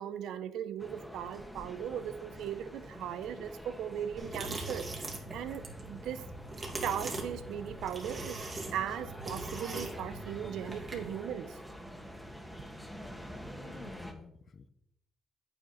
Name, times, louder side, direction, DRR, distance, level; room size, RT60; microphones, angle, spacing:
voice 1, 0.0-5.0 5.3-6.2 6.5-8.4 8.7-11.6, right 9 dB, 85° right, 13 dB, 0.7 m, -38 dB
sound 1, 0.8-14.1, equal, ahead, 1.7 m, -47 dB
sound 2, 4.2-11.2, right 2 dB, 35° right, 2.8 m, -41 dB
voice 2, 12.2-12.7 13.6-14.7, left 5 dB, 45° left, 13 dB, 0.8 m, -52 dB
9.2 x 8.7 x 4.0 m, 0.80 s
cardioid pair, 90°, 0 cm